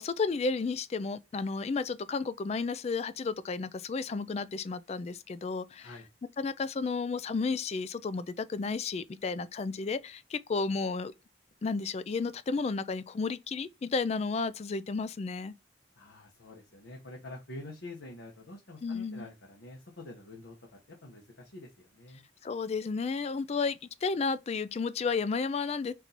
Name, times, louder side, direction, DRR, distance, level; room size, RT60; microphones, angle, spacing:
voice 1, 0.0-5.9 6.4-11.1 11.6-15.5 18.8-19.3 22.4-25.9, left 4 dB, 35° left, 0.3 m, -32 dB
voice 2, 16.0-22.2, left 2 dB, 85° left, 1.1 m, -47 dB
4.5 x 2.7 x 3.9 m
head